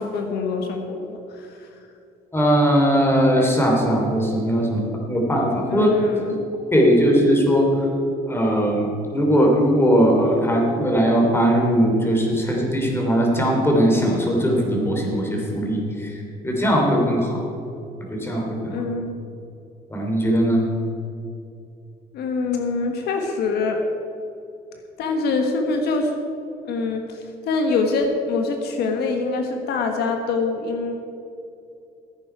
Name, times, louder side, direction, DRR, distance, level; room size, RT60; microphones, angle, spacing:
voice 1, 0.0-1.7 5.7-6.4 18.6-19.1 22.1-23.8 25.0-26.1 26.6-31.0, left 4 dB, 75° left, 3 dB, 1.3 m, -25 dB
voice 2, 2.3-5.9 6.7-7.7 8.3-17.4 18.1-18.8 19.9-20.6, equal, 15° left, 0 dB, 2.9 m, -19 dB
15.5 x 9.2 x 4.9 m, 2.7 s
cardioid pair, 110°, 17 cm